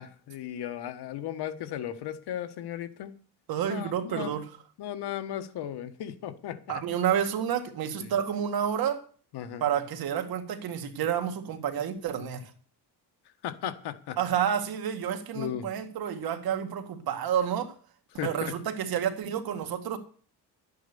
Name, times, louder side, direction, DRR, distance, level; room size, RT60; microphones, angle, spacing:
voice 1, 0.0-3.1 3.7-4.4 4.8-6.8 8.0-8.1 9.3-9.7 13.4-14.2 15.3-15.7 18.2-18.6, left 10 dB, 75° left, 1.4 m, -36 dB
voice 2, 3.5-4.5 6.7-9.0 9.6-12.5 14.2-17.7 18.2-20.0, right 9 dB, 60° right, 2.0 m, -29 dB
11.5 x 9.1 x 6.9 m
cardioid pair, 160°, 40 cm